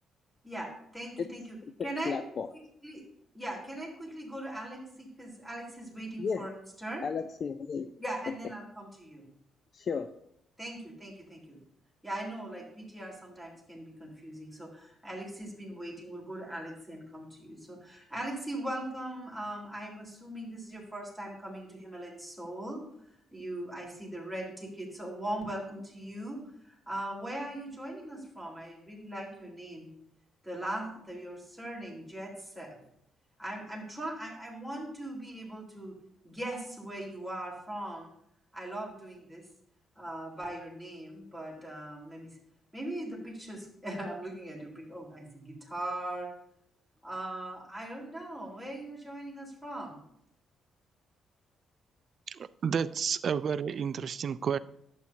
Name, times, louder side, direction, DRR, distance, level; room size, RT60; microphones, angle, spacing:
voice 1, 0.4-2.2 2.5-3.0 3.3-7.0 8.0-9.3 10.6-11.6 12.0-29.9 30.4-32.8 33.4-36.0 36.2-38.1 38.5-39.5 40.0-42.4 42.7-46.3 47.0-50.0, right 1 dB, 5° left, 3.5 m, -40 dB
voice 2, 1.8-2.5 6.2-6.5 7.0-7.9 9.7-10.1, left 5 dB, 50° left, 0.5 m, -33 dB
voice 3, 52.3-54.6, right 7 dB, 55° right, 0.4 m, -31 dB
11.5 x 8.5 x 2.8 m
cardioid pair, 90°, 0 cm